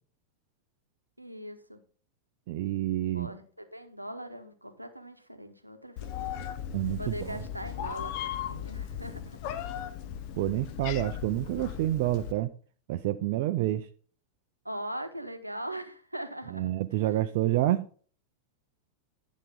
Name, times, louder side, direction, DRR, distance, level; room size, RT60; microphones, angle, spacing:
voice 1, 1.2-1.8 3.1-6.3 7.0-9.4 14.6-16.7 17.5-17.7, right 1 dB, 85° right, 0.9 m, -40 dB
voice 2, 2.5-3.3 6.7-7.4 10.3-12.5 12.9-13.9 16.5-17.9, right 14 dB, 50° right, 0.4 m, -28 dB
Meow, 6.0-12.3, left 10 dB, 45° left, 0.7 m, -37 dB
9.9 x 6.2 x 3.7 m
figure-of-eight pair, 90°, 0 cm